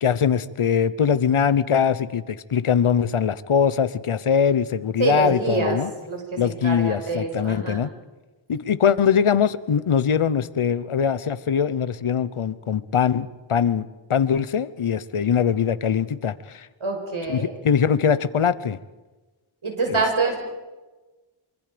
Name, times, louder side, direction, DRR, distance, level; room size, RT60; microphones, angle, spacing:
voice 1, 0.0-5.9 6.4-7.9 8.5-16.7 17.3-18.8 19.9-20.0, left 7 dB, 85° left, 15 dB, 1.0 m, -22 dB
voice 2, 5.0-5.8 6.1-7.8 16.8-17.5 19.6-20.4, right 3 dB, 75° right, 2 dB, 5.9 m, -25 dB
26.0 x 25.0 x 5.2 m, 1.2 s
wide cardioid pair, 65°, 49 cm